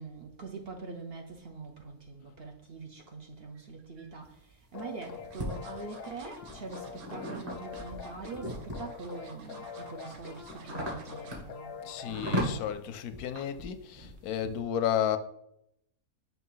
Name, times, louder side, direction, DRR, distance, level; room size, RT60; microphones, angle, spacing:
voice 1, 0.0-11.8, right 4 dB, 55° right, 0.8 m, -43 dB
sound 1, 3.5-4.1 4.8-11.5 11.9-12.1 12.4-12.5, right 5 dB, 75° right, 1.3 m, -53 dB
sound 2, 4.2-5.5 6.2-9.0 9.6-14.6, equal, 35° right, 1.8 m, -37 dB
sound 3, 4.7-12.7, left 6 dB, 60° left, 0.6 m, -45 dB
voice 2, 11.8-15.2, left 9 dB, 90° left, 1.1 m, -32 dB
6.0 x 2.8 x 5.5 m
omnidirectional pair, 1.6 m